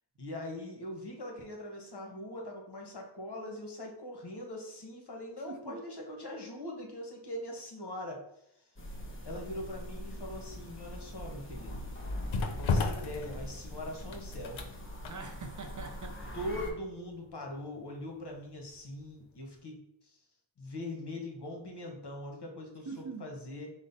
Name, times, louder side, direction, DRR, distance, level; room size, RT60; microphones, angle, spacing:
voice 1, 0.2-8.2 9.2-11.8 12.5-14.6 16.3-20.2 20.6-23.7, left 1 dB, 55° left, 1 dB, 1.1 m, -42 dB
voice 2, 5.5-5.8 15.1-16.4 22.9-23.3, right 4 dB, 40° right, 5 dB, 0.5 m, -43 dB
Storm Arwen wind rattling apartment windows, 8.8-16.7, equal, 25° left, 0.8 m, -42 dB
sound 1, 11.1-19.0 19.3-19.5, left 4 dB, 80° left, 0.6 m, -37 dB
5.0 x 2.2 x 4.0 m, 0.80 s
wide cardioid pair, 60°, 46 cm